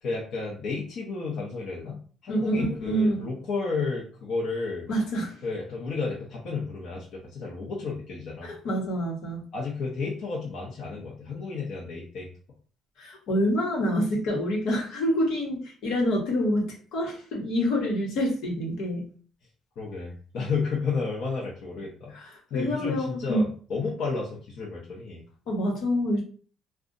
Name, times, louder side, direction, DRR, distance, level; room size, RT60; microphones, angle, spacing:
voice 1, 0.0-4.9 5.4-8.5 9.5-12.3 19.8-22.1 22.5-25.2, left 4 dB, 70° left, -3 dB, 0.8 m, -32 dB
voice 2, 2.3-3.3 4.9-5.3 8.4-9.4 13.0-19.0 22.2-23.5 25.5-26.2, equal, 85° left, -1 dB, 1.1 m, -27 dB
2.5 x 2.3 x 3.8 m, 0.41 s
cardioid pair, 105°, 0 cm